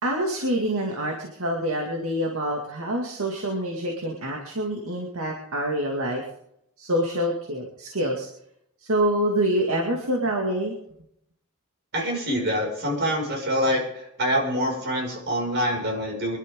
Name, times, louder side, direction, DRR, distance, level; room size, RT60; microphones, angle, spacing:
voice 1, 0.0-6.2 6.8-8.3 8.8-10.7, right 1 dB, 70° right, 0 dB, 2.2 m, -26 dB
voice 2, 11.9-16.4, equal, 55° right, 0 dB, 5.8 m, -25 dB
25.0 x 11.5 x 3.7 m, 0.73 s
head